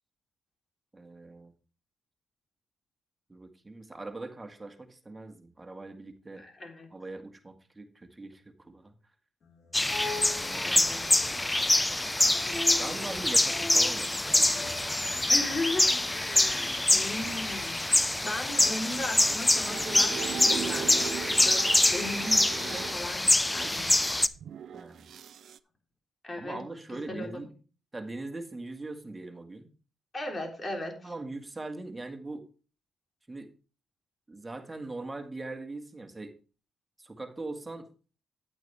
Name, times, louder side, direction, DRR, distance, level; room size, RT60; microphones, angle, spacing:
voice 1, 0.9-1.5 3.3-6.4 6.9-9.0 10.4-10.8 12.8-15.0 24.7-25.1 26.4-27.5 27.9-29.7 31.0-32.5 33.3-33.5 34.3-36.3 37.0-37.9, right 2 dB, 20° right, 5 dB, 2.0 m, -41 dB
voice 2, 6.4-6.9 10.6-11.0 15.3-21.6 21.9-24.1 26.2-26.6 26.9-27.3 30.1-31.1, left 2 dB, 35° left, 3 dB, 3.6 m, -37 dB
sound 1, 9.4-22.3, left 3 dB, 60° left, 2.6 m, -44 dB
sound 2, 9.7-24.3, left 1 dB, 15° left, 0.6 m, -25 dB
sound 3, 19.1-22.9 23.5-25.6, right 9 dB, 70° right, 0.5 m, -39 dB
9.9 x 8.7 x 3.4 m, 0.35 s
supercardioid pair, 55°, 0 cm